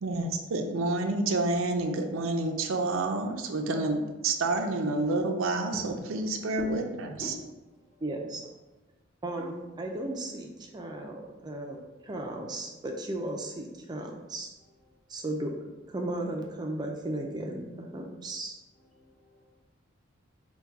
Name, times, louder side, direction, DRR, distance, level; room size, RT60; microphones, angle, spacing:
voice 1, 0.0-6.8 7.2-7.3, right 2 dB, 85° right, 4 dB, 0.5 m, -29 dB
voice 2, 5.7-6.4 6.9-8.0 9.4-9.5 14.9-15.0 18.7-19.6, equal, 40° left, -3 dB, 1.0 m, -45 dB
voice 3, 8.0-8.4 9.2-14.5 15.1-18.5, right 1 dB, 20° right, 1 dB, 0.4 m, -35 dB
4.5 x 2.3 x 4.6 m, 1.1 s
head